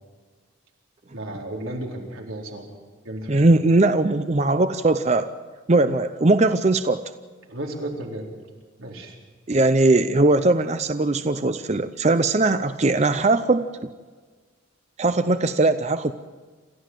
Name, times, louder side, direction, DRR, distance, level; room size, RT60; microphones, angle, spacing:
voice 1, 1.1-2.7 3.0-3.5 7.5-8.3 8.8-9.2, right 1 dB, 90° right, 0 dB, 4.2 m, -33 dB
voice 2, 3.3-5.3 5.7-7.0 9.5-13.7 15.0-16.1, right 2 dB, 35° right, 10 dB, 0.6 m, -20 dB
28.0 x 14.0 x 7.7 m, 1.5 s
head